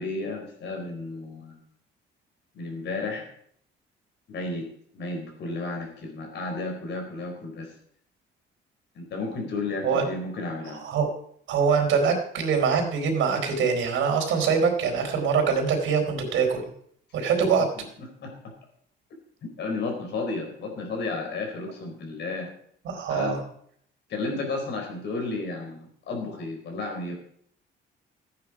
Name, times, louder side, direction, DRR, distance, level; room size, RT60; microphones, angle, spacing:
voice 1, 0.0-1.6 2.5-3.3 4.3-4.7 4.9-7.7 8.9-10.8 17.8-18.3 19.6-22.5 23.1-23.4 24.1-27.1, left 3 dB, 60° left, 2 dB, 4.4 m, -33 dB
voice 2, 10.7-11.1 11.5-16.7 17.1-17.7 22.8-23.4, right 6 dB, 80° right, 3 dB, 4.2 m, -24 dB
15.5 x 9.6 x 4.9 m, 0.66 s
cardioid pair, 155°, 20 cm